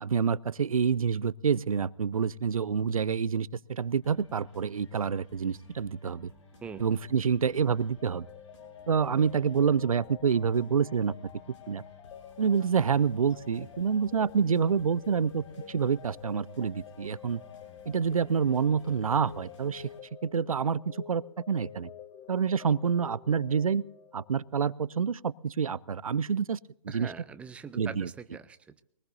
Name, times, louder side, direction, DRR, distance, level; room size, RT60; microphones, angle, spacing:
voice 1, 0.0-6.3 6.8-8.3 8.9-11.1 11.7-11.8 12.4-17.4 17.9-19.9 20.2-21.9 22.3-23.8 24.1-26.6 26.8-27.1 27.7-28.1, right 6 dB, 80° right, 22 dB, 0.6 m, -27 dB
sound 1, 4.0-20.0, left 3 dB, 60° left, 7.2 m, -56 dB
sound 2, 8.0-24.6, left 8 dB, 25° left, 0.8 m, -49 dB
voice 2, 26.9-28.8, right 6 dB, 5° right, 12 dB, 0.5 m, -43 dB
22.5 x 19.0 x 2.7 m, 0.77 s
figure-of-eight pair, 130°, 17 cm